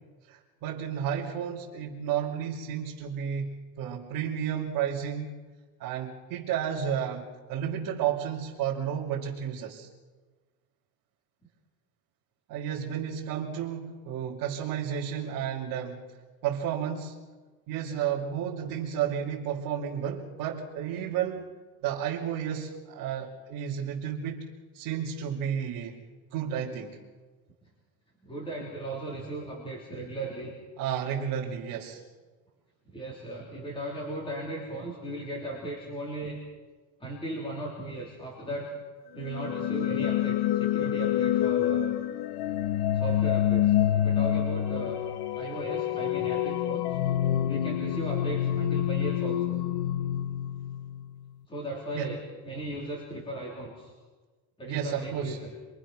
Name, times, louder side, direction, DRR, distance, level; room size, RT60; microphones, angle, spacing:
voice 1, 0.3-3.5 3.8-5.3 5.8-9.9 12.5-16.0 16.4-17.2 17.7-21.4 21.8-24.5 24.7-26.0 26.3-27.0 30.8-32.0 51.9-52.1 54.6-55.4, right 9 dB, 40° right, -6 dB, 2.9 m, -32 dB
voice 2, 28.2-30.5 32.9-36.4 37.0-38.8 39.1-42.0 42.9-45.0 45.3-47.0 47.4-49.6 51.5-53.9 54.6-55.5, right 1 dB, 10° left, -3 dB, 3.6 m, -37 dB
sound 1, 39.2-51.1, left 11 dB, 50° left, 1.1 m, -27 dB
27.0 x 24.0 x 6.2 m, 1.3 s
cardioid pair, 165°, 48 cm